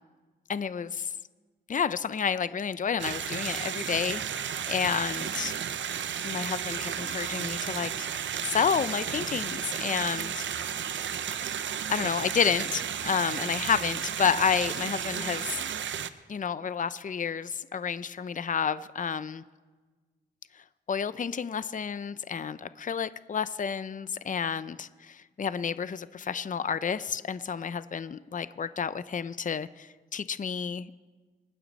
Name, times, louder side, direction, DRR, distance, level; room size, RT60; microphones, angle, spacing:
voice 1, 0.5-1.1 1.7-5.5 6.2-8.1 8.4-10.4 11.9-15.6 16.3-19.4 20.9-30.9, left 7 dB, 45° left, 14 dB, 0.5 m, -30 dB
sound 1, 3.0-16.1, right 8 dB, 85° right, 0.6 m, -33 dB
26.5 x 9.4 x 4.1 m, 1.4 s
cardioid pair, 55°, 19 cm